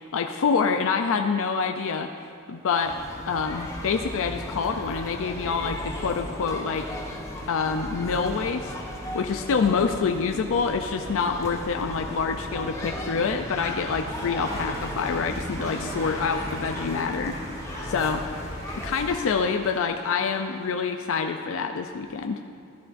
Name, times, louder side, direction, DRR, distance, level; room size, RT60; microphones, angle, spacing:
voice 1, 0.0-2.1 2.5-3.0 3.3-6.9 7.5-8.7 9.1-17.4 17.8-18.2 18.7-22.4, left 5 dB, 65° left, 5 dB, 0.4 m, -26 dB
sound 1, 2.8-19.2, equal, 15° left, 1.1 m, -36 dB
Applause / Crowd, 14.1-20.9, right 1 dB, 30° right, 2.6 m, -43 dB
15.0 x 11.5 x 2.6 m, 2.7 s
head